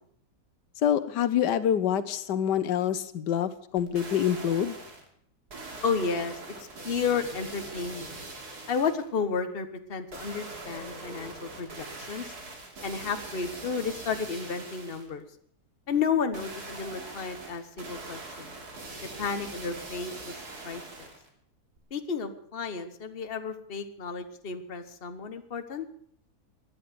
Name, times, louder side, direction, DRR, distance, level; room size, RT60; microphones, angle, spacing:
voice 1, 0.8-4.8, left 9 dB, 90° left, 13 dB, 1.5 m, -26 dB
sound 1, 3.8-5.1 5.5-9.1 10.1-15.1 16.3-21.3 21.8-21.9, right 2 dB, 65° right, 3.3 m, -42 dB
voice 2, 5.8-8.1 8.7-12.3 12.8-15.2 15.9-18.5 19.2-20.4 20.6-21.1 21.9-25.8, left 5 dB, 35° left, 8 dB, 1.4 m, -32 dB
17.5 x 11.0 x 6.9 m, 0.65 s
omnidirectional pair, 1.8 m